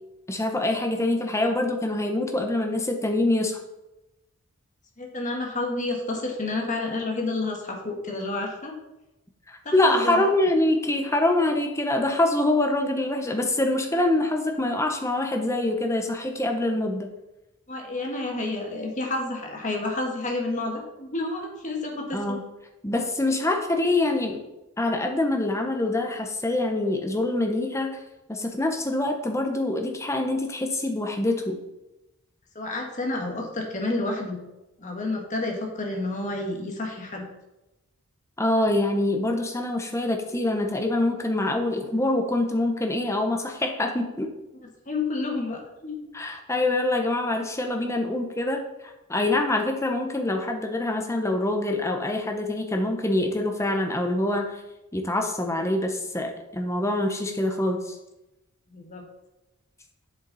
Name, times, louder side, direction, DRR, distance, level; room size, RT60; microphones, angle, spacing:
voice 1, 0.3-3.6 9.5-17.1 22.1-22.4 22.8-24.4 24.8-28.0 28.3-31.6 38.4-44.3 46.1-48.6 49.1-54.6 54.9-58.0, left 2 dB, 15° left, 3 dB, 0.8 m, -25 dB
voice 2, 5.0-8.7 9.6-10.3 17.7-22.4 32.5-34.4 34.8-37.3 44.9-46.1 58.7-59.0, left 2 dB, 35° left, 1 dB, 1.5 m, -30 dB
8.0 x 7.2 x 4.0 m, 0.98 s
head